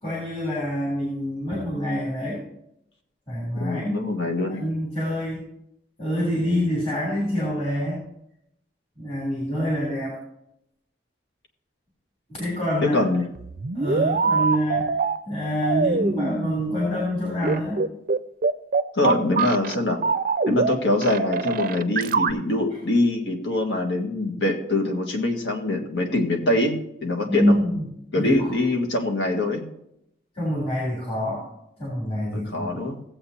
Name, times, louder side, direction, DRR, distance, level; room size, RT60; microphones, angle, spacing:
voice 1, 0.0-2.4 3.3-4.1 4.5-5.4 6.0-8.0 9.0-10.2 12.3-13.0 13.7-15.0 15.3-17.8 27.3-28.5 30.3-31.4 31.8-32.8, equal, 35° left, -4 dB, 3.2 m, -26 dB
voice 2, 3.6-4.6 12.8-13.3 18.9-20.0 20.5-27.5 28.1-29.7 32.3-33.0, left 2 dB, 80° left, 2 dB, 1.6 m, -24 dB
sound 1, 13.3-15.2 15.6-16.6 17.4-19.8 20.0-20.7 21.0-22.3, right 4 dB, 50° right, 0.5 m, -23 dB
17.0 x 7.7 x 2.8 m, 0.79 s
head